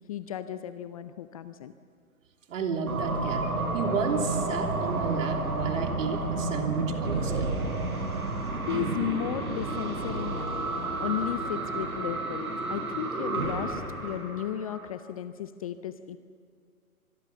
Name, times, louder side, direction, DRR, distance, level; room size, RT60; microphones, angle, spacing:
voice 1, 0.1-1.7 8.7-16.2, left 11 dB, 25° left, 12 dB, 0.5 m, -34 dB
voice 2, 2.5-7.5, right 5 dB, 60° right, 4 dB, 3.1 m, -32 dB
sound 1, 2.9-14.9, right 3 dB, 75° right, 5.6 m, -31 dB
25.5 x 21.0 x 7.0 m, 2.1 s
figure-of-eight pair, 125°, 44 cm